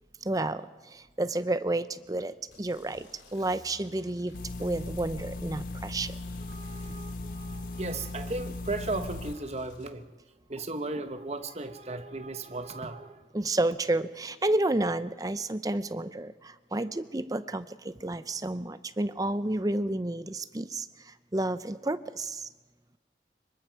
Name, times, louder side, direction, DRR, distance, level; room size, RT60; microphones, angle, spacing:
voice 1, 0.2-6.2 13.3-22.5, right 2 dB, 20° right, 13 dB, 0.6 m, -31 dB
sound 1, 2.5-9.9, left 1 dB, 90° left, 3.1 m, -54 dB
sound 2, 4.3-9.3, left 2 dB, 50° left, 0.6 m, -38 dB
voice 2, 6.4-10.1 10.5-13.3, right 2 dB, 35° right, 8 dB, 1.2 m, -36 dB
25.5 x 23.0 x 4.7 m, 1.2 s
head